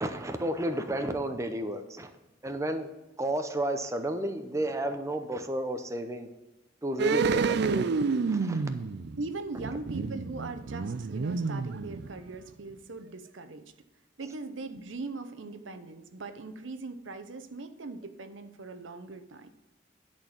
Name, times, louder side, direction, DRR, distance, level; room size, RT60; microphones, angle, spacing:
voice 1, 0.0-2.1 2.4-2.9 3.2-6.3 6.8-7.9 8.3-8.6, right 1 dB, 15° right, 6 dB, 0.7 m, -32 dB
sound 1, 7.0-12.4 12.7-12.8, right 4 dB, 60° right, 0.4 m, -29 dB
voice 2, 9.2-13.7 14.2-19.5, right 3 dB, 80° right, 9 dB, 0.8 m, -40 dB
10.5 x 4.5 x 7.1 m, 1.0 s
head